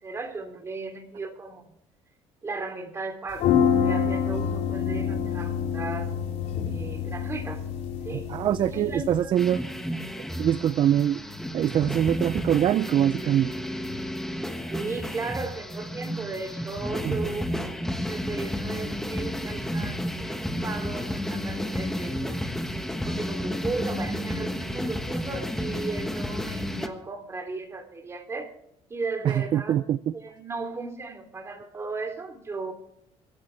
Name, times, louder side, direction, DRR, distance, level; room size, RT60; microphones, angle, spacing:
voice 1, 0.0-1.6 2.4-3.5 3.8-6.1 6.7-7.6 8.0-8.3 8.7-9.3 14.7-17.5 18.1-22.4 23.0-28.5 28.9-29.8 30.1-32.7, right 3 dB, 25° right, 6 dB, 2.9 m, -35 dB
sound 1, 3.3-9.2, left 7 dB, 75° left, 4.3 m, -27 dB
voice 2, 8.1-9.6 10.4-11.2 11.5-13.6 17.0-17.2 29.2-30.1, right 10 dB, 45° right, 17 dB, 0.4 m, -24 dB
sound 2, 9.4-26.9, equal, 5° left, 1.3 m, -32 dB
24.0 x 11.5 x 3.3 m, 0.73 s
cardioid pair, 145°, 12 cm